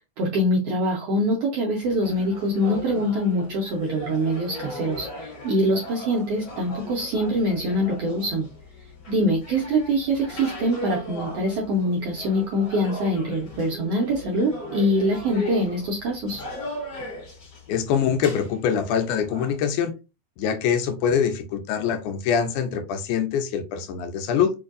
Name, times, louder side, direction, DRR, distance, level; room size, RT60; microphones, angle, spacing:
voice 1, 0.2-8.5 9.1-16.4, equal, 80° right, -1 dB, 1.3 m, -24 dB
sound 1, 1.8-19.5, equal, 40° left, 1.8 m, -38 dB
voice 2, 17.7-19.9 20.4-24.5, left 7 dB, 80° left, 7 dB, 2.1 m, -24 dB
4.7 x 2.6 x 2.5 m, 0.30 s
omnidirectional pair, 3.6 m